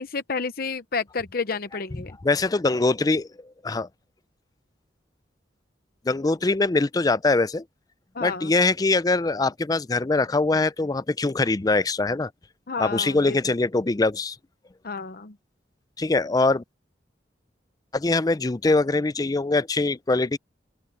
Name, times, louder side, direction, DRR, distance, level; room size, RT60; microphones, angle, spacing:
voice 1, 0.0-2.2 8.1-8.5 12.7-13.5 14.8-15.4, left 4 dB, 55° left, 0.8 m, -31 dB
voice 2, 2.2-3.3 3.6-3.9 6.1-7.6 8.2-12.3 12.8-14.4 16.0-16.6 17.9-20.4, left 3 dB, 20° left, 0.4 m, -23 dB
open air
head